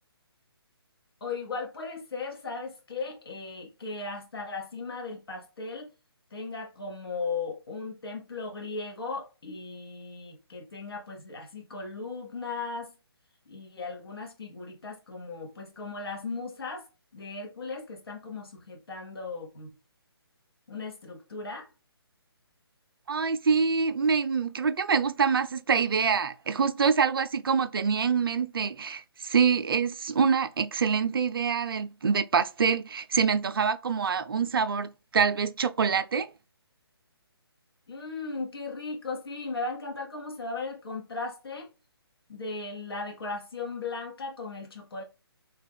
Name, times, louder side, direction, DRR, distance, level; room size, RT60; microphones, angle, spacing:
voice 1, 1.2-5.9 6.3-12.9 13.5-16.8 17.1-19.7 20.7-21.7 37.9-41.7 42.3-45.0, left 3 dB, 65° left, 1.0 m, -37 dB
voice 2, 23.1-36.3, right 6 dB, 60° right, 0.4 m, -25 dB
3.4 x 2.2 x 3.4 m
figure-of-eight pair, 145°, 13 cm